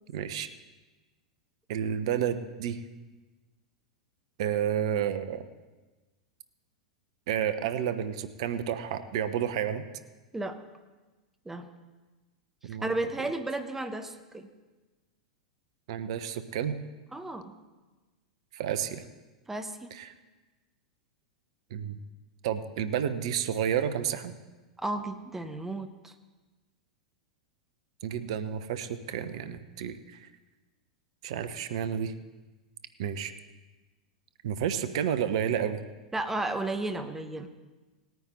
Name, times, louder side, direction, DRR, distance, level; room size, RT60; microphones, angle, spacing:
voice 1, 0.1-0.5 1.7-2.8 4.4-5.4 7.3-9.9 12.6-12.9 15.9-16.8 18.5-19.0 19.9-20.1 21.7-22.0 22.4-24.3 28.0-30.3 31.2-32.1 33.0-33.3 34.4-35.8, right 9 dB, 55° right, 11 dB, 0.8 m, -30 dB
voice 2, 12.8-14.5 17.1-17.5 19.5-19.9 24.8-26.1 36.1-37.5, right 2 dB, 10° right, 7 dB, 1.0 m, -33 dB
19.0 x 9.3 x 4.1 m, 1.2 s
figure-of-eight pair, 90°, 4 cm